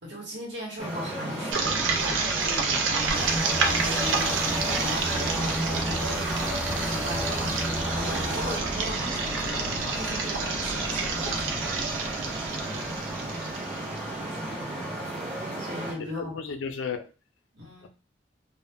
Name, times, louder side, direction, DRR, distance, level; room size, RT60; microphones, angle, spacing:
voice 1, 0.0-12.0 14.4-15.0 15.6-16.4 17.5-17.9, left 1 dB, 65° right, -2 dB, 1.0 m, -38 dB
Traffic noise roadway noise, 0.8-15.9, right 1 dB, 35° right, 0.7 m, -34 dB
sound 1, 1.5-14.3, right 4 dB, 85° right, 0.5 m, -29 dB
sound 2, 3.1-8.6, equal, 5° right, 0.5 m, -32 dB
voice 2, 12.6-13.2 16.1-17.1 17.8-17.9, left 5 dB, 85° left, 7 dB, 0.4 m, -35 dB
2.2 x 2.0 x 3.4 m, 0.33 s
head